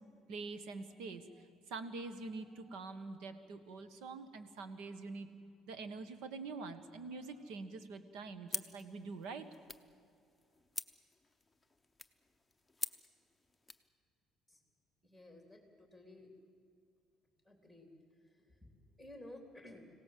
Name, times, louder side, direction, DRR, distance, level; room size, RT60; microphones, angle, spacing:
voice 1, 0.3-5.3 5.7-9.4, right 3 dB, 85° right, 10 dB, 1.6 m, -45 dB
sound 1, 8.5-13.9, left 2 dB, 10° left, 0.8 m, -47 dB
voice 2, 15.0-16.3 17.5-17.9 19.0-19.9, left 1 dB, 10° right, 3 dB, 3.7 m, -54 dB
25.0 x 17.5 x 7.8 m, 2.4 s
cardioid pair, 135°, 0 cm